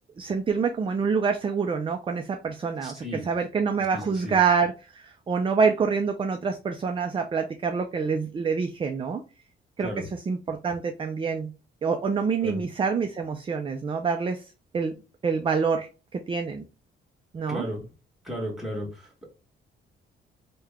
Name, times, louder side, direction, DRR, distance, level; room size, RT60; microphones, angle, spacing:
voice 1, 0.2-9.2 9.8-11.5 11.8-14.4 14.7-15.0 15.2-16.6 17.3-17.7, right 5 dB, 25° right, 6 dB, 0.4 m, -26 dB
voice 2, 2.8-3.2 3.9-4.3 9.8-10.1 12.4-12.6 17.5-17.8 18.2-19.3, equal, ahead, 0 dB, 1.5 m, -34 dB
3.3 x 2.2 x 3.5 m, 0.32 s
cardioid pair, 90°, 20 cm